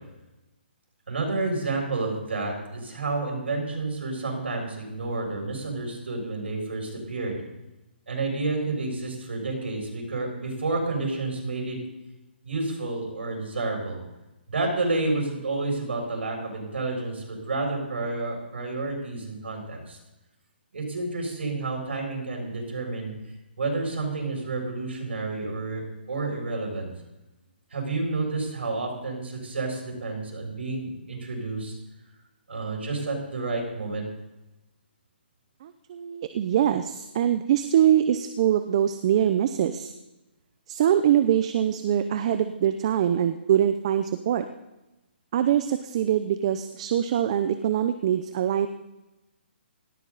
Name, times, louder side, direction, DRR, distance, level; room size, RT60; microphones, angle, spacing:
voice 1, 1.1-7.4 8.1-11.8 12.4-14.0 14.5-20.0 20.7-23.1 23.6-26.9 27.7-31.7 32.5-34.0, right 3 dB, 80° right, 1 dB, 6.9 m, -30 dB
voice 2, 35.6-39.9 40.7-44.4 45.3-48.7, right 10 dB, 30° right, 10 dB, 0.7 m, -23 dB
18.0 x 14.5 x 4.1 m, 1.0 s
hypercardioid pair, 170°, 6 cm